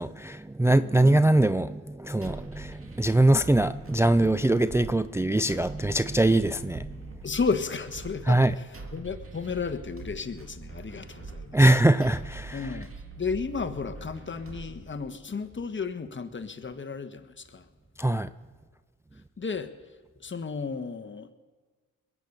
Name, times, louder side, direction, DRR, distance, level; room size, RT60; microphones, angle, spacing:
voice 1, 0.0-7.0 8.3-8.5 11.5-12.7 18.0-18.3, right 1 dB, 10° right, 0.4 m, -22 dB
sound 1, 2.2-15.2, right 3 dB, 40° right, 2.3 m, -43 dB
voice 2, 7.2-8.7 8.9-11.7 12.5-12.9 13.2-17.6 19.4-19.7 20.2-21.3, left 5 dB, 30° left, 1.3 m, -33 dB
21.5 x 8.6 x 6.7 m
supercardioid pair, 50°, 35 cm